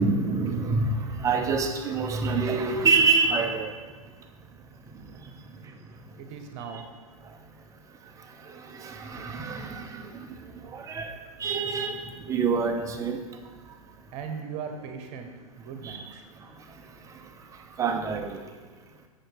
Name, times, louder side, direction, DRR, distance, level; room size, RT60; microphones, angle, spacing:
voice 1, 0.0-3.7 6.7-6.8 8.7-10.3 10.7-11.1 11.4-12.0 12.3-13.2 15.8-16.0 17.8-18.4, right 4 dB, 15° right, 4 dB, 0.8 m, -26 dB
voice 2, 6.2-6.9 14.1-15.3 15.6-16.2, right 6 dB, 35° right, 6 dB, 1.2 m, -38 dB
6.6 x 6.4 x 4.6 m, 1.4 s
hypercardioid pair, 110°, 19 cm